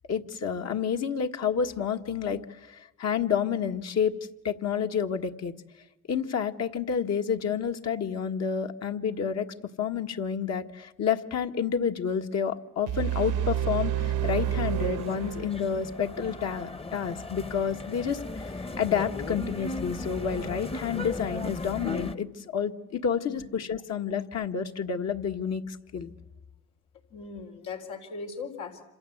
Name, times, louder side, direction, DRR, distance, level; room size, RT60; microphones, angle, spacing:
voice 1, 0.1-4.2 4.4-5.5 6.1-9.5 9.8-26.1, left 7 dB, 60° left, 5 dB, 1.8 m, -29 dB
sound 1, 12.9-15.9, right 11 dB, 80° right, 1.0 m, -29 dB
sound 2, 13.5-22.1, left 2 dB, 20° left, 1.0 m, -37 dB
voice 2, 27.1-28.8, left 5 dB, 85° left, 2 dB, 3.9 m, -39 dB
27.0 x 26.5 x 8.0 m, 0.92 s
cardioid pair, 90°, 30 cm